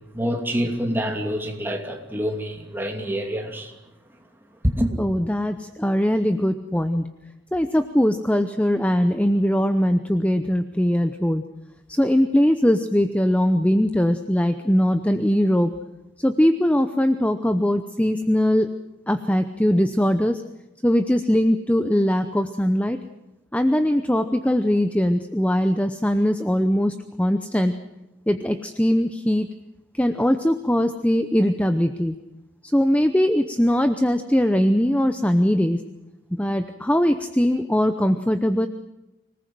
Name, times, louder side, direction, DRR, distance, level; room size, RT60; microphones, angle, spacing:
voice 1, 0.1-3.7 4.6-4.9, equal, 10° right, 3 dB, 2.7 m, -26 dB
voice 2, 5.0-7.0 7.5-11.4 11.9-15.7 16.2-18.7 19.1-20.4 20.8-23.0 23.5-27.7 28.3-29.5 29.9-32.1 32.6-35.8 36.4-38.7, equal, 5° left, 8 dB, 0.7 m, -21 dB
25.5 x 18.5 x 7.8 m, 0.96 s
head